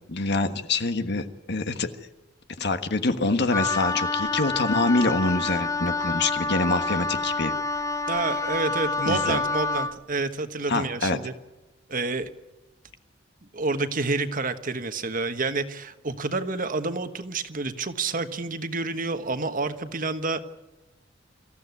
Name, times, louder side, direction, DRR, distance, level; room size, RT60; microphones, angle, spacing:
voice 1, 0.1-1.9 2.6-7.5 9.1-9.4 10.7-11.2, left 3 dB, 60° left, 9 dB, 1.4 m, -25 dB
Wind instrument woodwind instrument, 3.5-10.0, left 3 dB, 15° left, 0.7 m, -28 dB
voice 2, 8.1-11.3 11.9-12.3 13.5-20.4, right 3 dB, 45° right, 9 dB, 1.4 m, -29 dB
25.0 x 15.0 x 9.5 m, 1.1 s
head